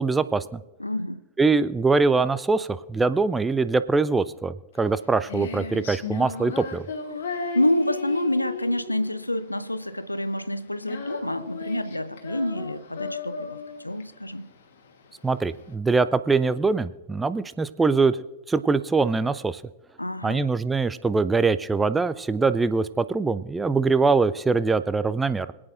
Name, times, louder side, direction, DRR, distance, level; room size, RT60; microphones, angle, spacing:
voice 1, 0.0-0.6 1.4-6.9 15.2-18.2 18.5-19.6 20.2-25.5, right 4 dB, 10° right, 0.4 m, -23 dB
voice 2, 0.8-1.2 7.5-14.5 20.0-20.5, left 1 dB, 85° left, 0.5 m, -27 dB
Female singing, 4.7-15.7, left 4 dB, 60° left, 1.3 m, -36 dB
26.0 x 8.7 x 2.5 m
figure-of-eight pair, 90°, 0 cm